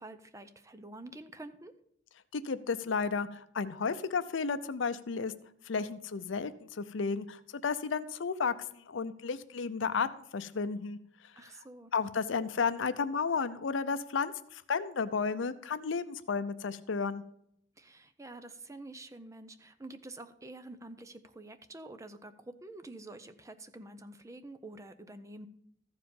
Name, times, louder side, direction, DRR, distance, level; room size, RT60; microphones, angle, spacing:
voice 1, 0.0-1.7 11.3-11.9 17.8-25.5, right 2 dB, 15° right, 11 dB, 0.5 m, -48 dB
voice 2, 2.3-5.3 5.7-10.1 10.3-11.0 11.9-17.2, left 5 dB, 70° left, 13 dB, 0.6 m, -33 dB
14.0 x 4.9 x 5.3 m, 0.71 s
head